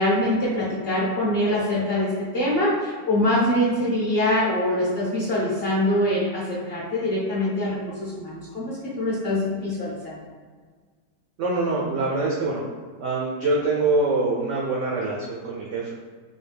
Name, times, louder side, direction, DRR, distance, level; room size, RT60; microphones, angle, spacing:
voice 1, 0.0-10.2, left 1 dB, 50° left, -6 dB, 0.8 m, -24 dB
voice 2, 11.4-12.6 13.0-15.9, right 3 dB, 80° right, -3 dB, 0.6 m, -24 dB
4.0 x 2.2 x 3.3 m, 1.5 s
omnidirectional pair, 1.9 m